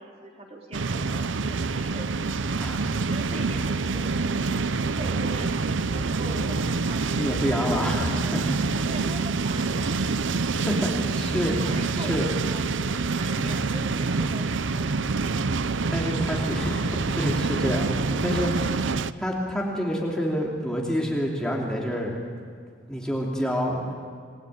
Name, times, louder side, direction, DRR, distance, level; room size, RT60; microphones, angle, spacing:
voice 1, 0.0-2.5 3.0-4.4 4.8-7.6 7.9-8.4 8.8-9.9 11.4-14.4 14.7-15.0, right 1 dB, 30° right, 0 dB, 3.6 m, -41 dB
sound 1, 0.7-19.1, right 4 dB, 80° right, 0.7 m, -26 dB
voice 2, 2.6-2.9 7.1-8.4 10.5-12.3 15.9-18.8 19.2-22.2 22.9-23.9, equal, 5° left, -2 dB, 2.8 m, -28 dB
28.0 x 21.0 x 9.1 m, 2.1 s
head